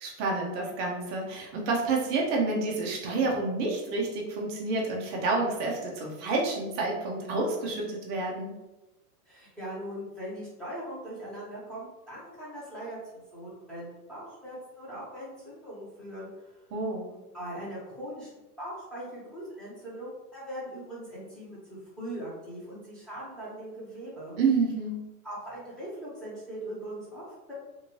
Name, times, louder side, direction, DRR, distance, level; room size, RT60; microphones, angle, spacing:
voice 1, 0.0-8.5 16.7-17.0 24.4-25.0, right 3 dB, 25° right, -1 dB, 0.4 m, -29 dB
voice 2, 9.3-16.6 17.1-21.6 22.0-24.4 25.2-27.5, right 1 dB, ahead, -9 dB, 1.1 m, -40 dB
2.6 x 2.5 x 3.0 m, 1.0 s
hypercardioid pair, 135°, 46 cm